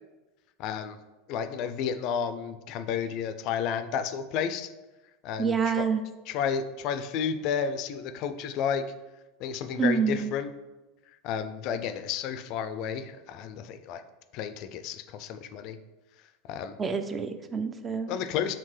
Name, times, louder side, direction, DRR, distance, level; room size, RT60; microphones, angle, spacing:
voice 1, 0.6-1.0 1.3-4.7 5.2-5.9 6.3-8.8 9.4-10.5 11.1-14.0 14.3-15.8 16.2-16.8 18.1-18.6, left 7 dB, 55° left, 10 dB, 0.3 m, -32 dB
voice 2, 5.4-6.0 9.8-10.3 16.8-18.2, right 6 dB, 25° right, 9 dB, 0.4 m, -27 dB
4.4 x 3.5 x 3.2 m, 1.1 s
hypercardioid pair, 90°, 0 cm